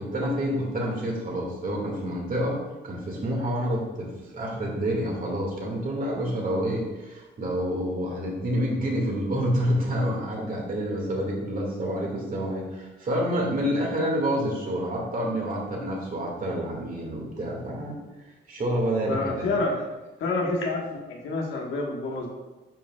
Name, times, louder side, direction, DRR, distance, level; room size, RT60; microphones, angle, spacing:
voice 1, 0.0-18.0 18.5-19.6, equal, 45° right, -2 dB, 2.2 m, -28 dB
voice 2, 19.1-19.7 20.2-22.3, left 2 dB, 75° left, -1 dB, 1.5 m, -28 dB
8.8 x 5.0 x 2.4 m, 1.1 s
cardioid pair, 90°, 20 cm